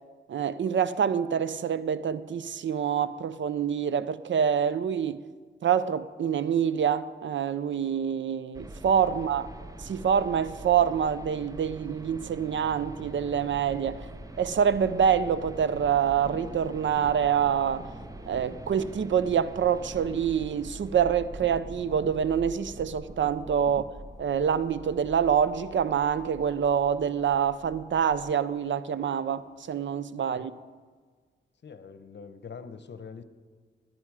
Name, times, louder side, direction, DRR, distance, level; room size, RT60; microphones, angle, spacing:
voice 1, 0.3-5.3 5.6-9.5 9.8-14.1 14.4-17.9 18.3-23.9 24.2-30.5, right 8 dB, 70° right, 0.6 m, -26 dB
sound 1, 8.5-28.4, right 1 dB, 15° right, 0.7 m, -45 dB
sound 2, 13.8-29.7, right 1 dB, 35° right, 1.3 m, -50 dB
voice 2, 31.6-33.2, left 5 dB, 60° left, 0.9 m, -44 dB
18.0 x 9.6 x 4.9 m
cardioid pair, 80°, 20 cm